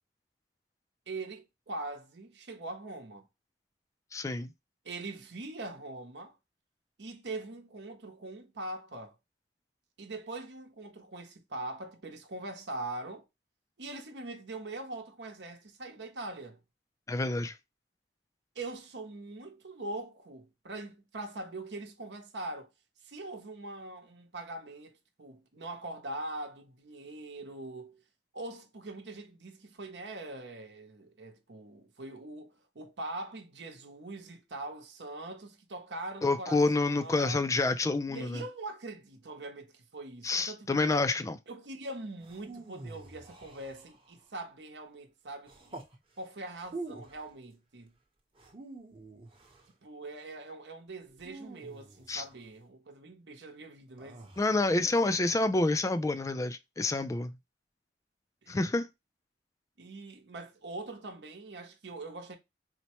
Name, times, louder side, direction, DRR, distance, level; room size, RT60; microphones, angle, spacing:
voice 1, 1.1-3.3 4.8-6.3 7.0-9.2 10.0-13.2 13.8-16.6 18.5-22.7 23.0-28.0 28.3-37.5 38.1-40.9 41.5-45.8 46.2-47.9 49.8-54.3 54.8-55.2 58.4-58.6 59.8-62.4, right 2 dB, 75° right, 0.8 m, -42 dB
voice 2, 4.1-4.5 17.1-17.6 36.2-38.4 40.2-41.4 52.1-52.2 54.4-57.3 58.5-58.9, left 2 dB, 20° left, 0.3 m, -28 dB
sound 1, 42.2-44.2 45.5-46.0 46.6-47.3 48.3-49.7 51.2-52.4 54.0-54.7, right 2 dB, 30° right, 0.9 m, -46 dB
4.2 x 2.1 x 2.9 m
head